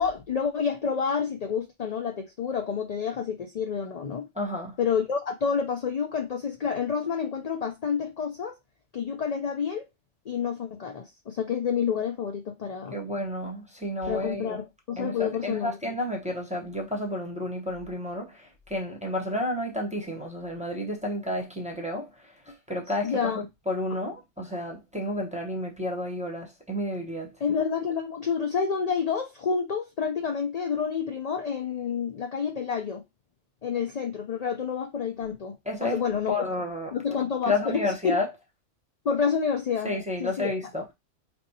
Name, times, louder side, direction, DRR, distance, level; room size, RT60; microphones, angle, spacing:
voice 1, 0.0-4.3 4.8-8.5 8.9-9.9 10.3-13.0 14.1-15.8 23.0-23.4 27.4-33.0 33.6-35.5 35.8-36.3 36.9-38.2 39.0-39.9 40.2-40.5, left 6 dB, 60° left, 0.4 m, -29 dB
voice 2, 4.4-4.7 12.9-14.6 15.0-18.4 18.7-22.1 22.5-27.3 35.7-36.0 36.3-36.9 37.4-38.3 39.8-40.8, left 1 dB, 5° right, 0.8 m, -31 dB
4.4 x 2.7 x 2.7 m
omnidirectional pair, 1.3 m